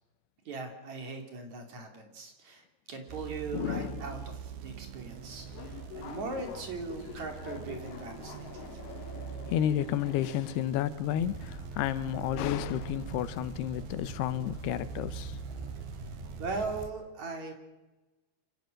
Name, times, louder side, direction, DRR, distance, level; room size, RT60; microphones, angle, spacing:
voice 1, 0.5-8.8 16.4-17.5, right 3 dB, 50° right, 4 dB, 3.8 m, -39 dB
sound 1, 3.1-16.8, right 9 dB, 75° right, 2.7 m, -44 dB
voice 2, 3.5-4.2 9.5-15.4, left 11 dB, 85° left, 14 dB, 3.0 m, -31 dB
Subway metro underground, 5.1-10.7, left 6 dB, 50° left, 2.4 m, -46 dB
sound 2, 11.2-16.9, right 2 dB, 10° right, 2.9 m, -43 dB
27.5 x 16.5 x 6.5 m, 1.1 s
omnidirectional pair, 4.6 m